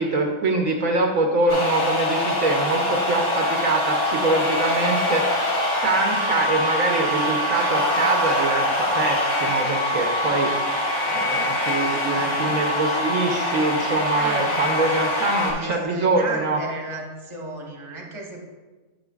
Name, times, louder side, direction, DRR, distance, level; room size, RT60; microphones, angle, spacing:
voice 1, 0.0-16.6, right 2 dB, 65° right, 2 dB, 1.1 m, -24 dB
sound 1, 1.5-15.5, left 1 dB, 65° left, 2.7 m, -24 dB
voice 2, 12.1-12.4 14.1-15.0 15.5-18.4, right 2 dB, 20° right, 0 dB, 1.1 m, -34 dB
8.9 x 7.9 x 2.4 m, 1.2 s
omnidirectional pair, 1.6 m